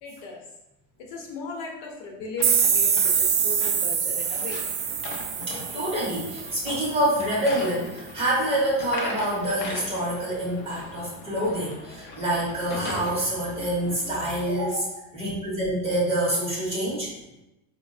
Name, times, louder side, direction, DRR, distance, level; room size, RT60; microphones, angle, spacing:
voice 1, 0.0-0.4 1.0-4.6, left 3 dB, 65° left, -1 dB, 0.8 m, -37 dB
sound 1, 2.4-14.4, left 2 dB, 35° left, 0.4 m, -39 dB
sound 2, 2.4-7.1, right 7 dB, 85° right, 0.6 m, -25 dB
voice 2, 5.5-17.1, right 1 dB, 15° right, -6 dB, 0.6 m, -26 dB
3.9 x 2.0 x 2.4 m, 0.94 s
cardioid pair, 170°, 34 cm